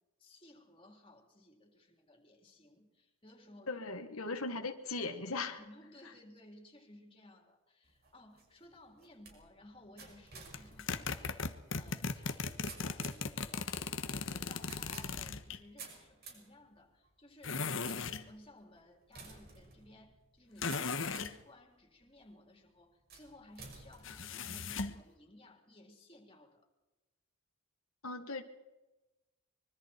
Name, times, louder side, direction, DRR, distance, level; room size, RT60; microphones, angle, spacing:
voice 1, 0.2-3.7 5.6-11.5 11.8-26.7, left 1 dB, 25° left, 3 dB, 3.9 m, -58 dB
voice 2, 3.7-5.6 28.0-28.4, left 3 dB, 85° left, 5 dB, 1.7 m, -38 dB
sound 1, 7.8-21.5 22.0-22.5 23.1-24.9, right 4 dB, 45° right, 5.9 m, -55 dB
sound 2, 10.5-15.6 17.4-18.3 20.6-21.3 24.0-25.0, left 4 dB, 65° left, 1.3 m, -37 dB
25.0 x 23.0 x 4.6 m, 1.1 s
head